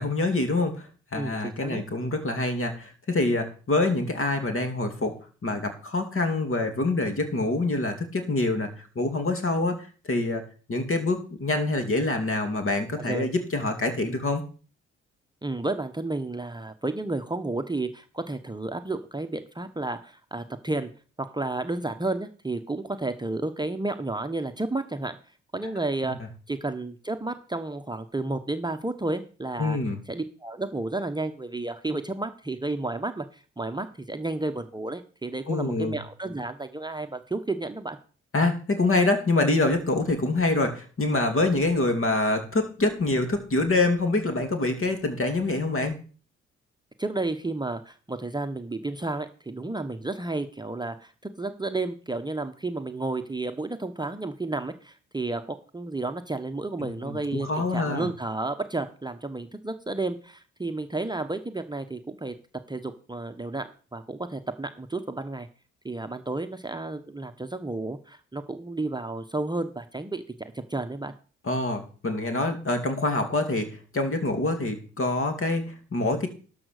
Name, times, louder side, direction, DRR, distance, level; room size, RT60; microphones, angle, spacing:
voice 1, 0.0-5.2 5.4-9.8 10.0-10.4 10.7-14.4 26.0-26.1 29.6-30.0 35.5-36.0 38.3-46.0 57.0-58.1 71.4-76.3, left 2 dB, 40° left, 6 dB, 2.6 m, -26 dB
voice 2, 1.1-1.8 13.0-13.3 15.4-20.9 21.2-25.2 25.5-26.2 26.5-29.8 30.1-38.0 47.0-51.1 51.4-57.5 57.7-62.3 62.7-65.5 65.8-71.1, right 2 dB, 15° right, 8 dB, 1.0 m, -32 dB
12.5 x 5.0 x 6.6 m, 0.38 s
hypercardioid pair, 45°, 32 cm